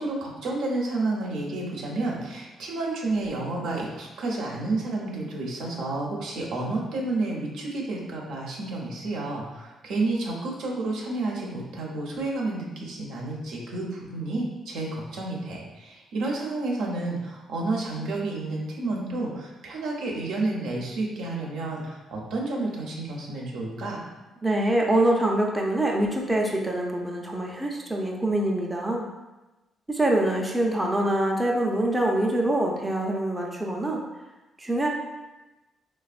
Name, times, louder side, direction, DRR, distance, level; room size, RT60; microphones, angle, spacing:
voice 1, 0.0-24.0, right 2 dB, 85° right, -3 dB, 0.6 m, -30 dB
voice 2, 24.4-29.1 29.9-34.0 34.6-34.9, right 1 dB, 10° right, -1 dB, 0.4 m, -25 dB
3.3 x 2.2 x 2.4 m, 1.1 s
cardioid pair, 90°, 0 cm